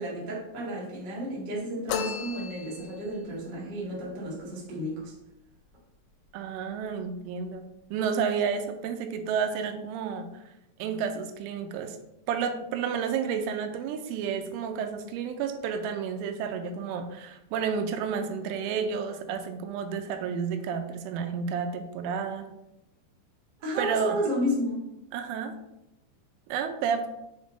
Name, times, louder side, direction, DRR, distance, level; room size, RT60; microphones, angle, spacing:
voice 1, 0.0-5.1 23.6-24.9, equal, 65° right, -6 dB, 1.0 m, -32 dB
sound 1, 1.9-3.1, left 8 dB, 85° left, 3.0 m, -34 dB
voice 2, 6.3-10.4 10.8-12.0 12.3-22.5 23.8-24.3 25.1-25.6 26.5-27.1, right 6 dB, 85° right, 7 dB, 3.1 m, -31 dB
7.0 x 3.7 x 3.8 m, 0.88 s
omnidirectional pair, 5.5 m